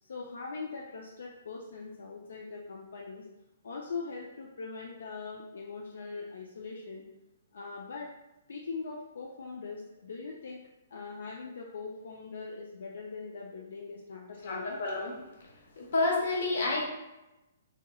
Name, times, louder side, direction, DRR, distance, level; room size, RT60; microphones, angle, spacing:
voice 1, 0.0-3.3 3.6-7.1 7.5-8.1 8.5-10.6 10.9-14.8, left 4 dB, 85° left, -1 dB, 0.4 m, -41 dB
voice 2, 14.5-15.1 15.8-16.8, left 2 dB, 60° left, -1 dB, 0.9 m, -29 dB
3.0 x 2.8 x 2.3 m, 0.98 s
hypercardioid pair, 170°, 0 cm